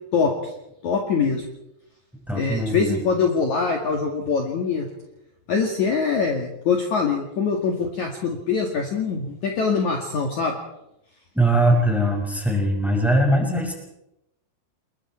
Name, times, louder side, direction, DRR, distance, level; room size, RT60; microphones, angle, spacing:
voice 1, 0.1-0.5 0.8-1.4 2.3-4.9 5.5-10.6, left 5 dB, 50° left, 1 dB, 3.1 m, -23 dB
voice 2, 2.3-3.0 11.3-13.7, right 1 dB, ahead, 1 dB, 5.5 m, -21 dB
30.0 x 22.0 x 4.5 m, 0.85 s
omnidirectional pair, 4.8 m